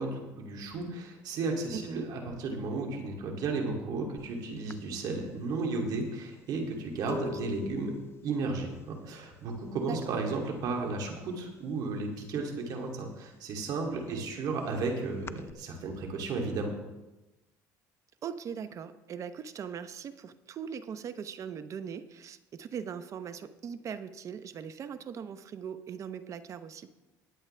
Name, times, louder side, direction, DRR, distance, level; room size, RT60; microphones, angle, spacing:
voice 1, 0.0-7.9 8.2-16.7, right 3 dB, 65° right, 2 dB, 2.6 m, -34 dB
voice 2, 1.7-2.1 7.1-7.5 9.9-10.0 14.1-14.6 18.2-26.9, right 7 dB, 45° right, 12 dB, 0.8 m, -40 dB
sound 1, 4.2-4.3 4.7-10.4 10.6-11.1 11.4-12.6 13.0-15.5, left 6 dB, 35° left, 0.4 m, -44 dB
20.5 x 8.0 x 3.3 m, 1.0 s
cardioid pair, 105°, 7 cm